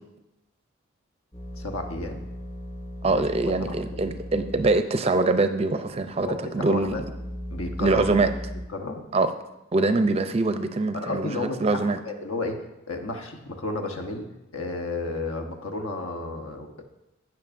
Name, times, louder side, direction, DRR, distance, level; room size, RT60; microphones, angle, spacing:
sound 1, 1.3-4.9 5.1-5.2 5.9-8.6, equal, 30° left, 2.0 m, -37 dB
voice 1, 1.6-2.2 3.0-3.2 3.6-4.0 6.2-7.0 7.5-8.3 8.7-9.0 10.9-14.3 14.5-16.8, left 2 dB, 85° left, 4 dB, 1.1 m, -32 dB
voice 2, 3.0-7.0 7.8-8.3 9.1-9.3 9.7-12.0, right 3 dB, 30° right, 9 dB, 0.4 m, -23 dB
16.0 x 6.0 x 2.6 m, 0.94 s
head